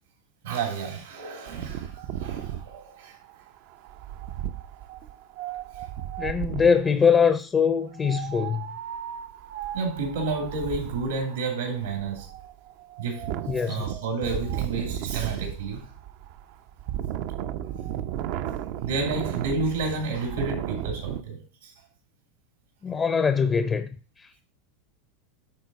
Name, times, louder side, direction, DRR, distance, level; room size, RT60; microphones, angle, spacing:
voice 1, 0.4-3.2 5.7-5.8 9.7-12.3 13.0-15.9 18.1-18.3 18.8-21.7, right 4 dB, 85° right, 2.7 m, -31 dB
Wind, 1.5-6.9 7.9-21.2, right 11 dB, 65° right, 0.5 m, -35 dB
voice 2, 6.2-8.7 13.5-13.8 22.8-23.9 24.2-24.3, left 6 dB, 25° left, 0.6 m, -22 dB
9.6 x 3.9 x 4.0 m
hypercardioid pair, 100°, 0 cm